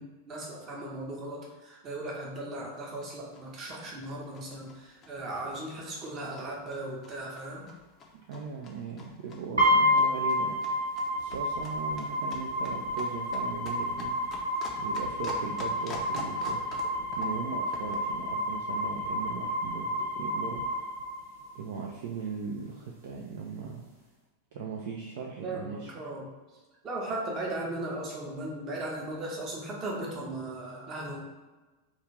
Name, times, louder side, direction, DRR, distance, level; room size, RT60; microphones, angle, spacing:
voice 1, 0.0-7.7 25.4-26.3 26.8-31.2, right 2 dB, 30° right, -2 dB, 0.7 m, -37 dB
sound 1, 2.7-18.1, left 3 dB, 30° left, 0.4 m, -48 dB
voice 2, 8.1-10.9 11.2-14.2 14.8-16.7 17.1-20.9 21.5-23.9 24.5-25.9, right 5 dB, 55° right, -1 dB, 0.3 m, -38 dB
sound 2, 9.6-21.6, left 1 dB, 75° right, 1.0 m, -30 dB
2.4 x 2.4 x 3.1 m, 1.2 s
figure-of-eight pair, 90°, 0 cm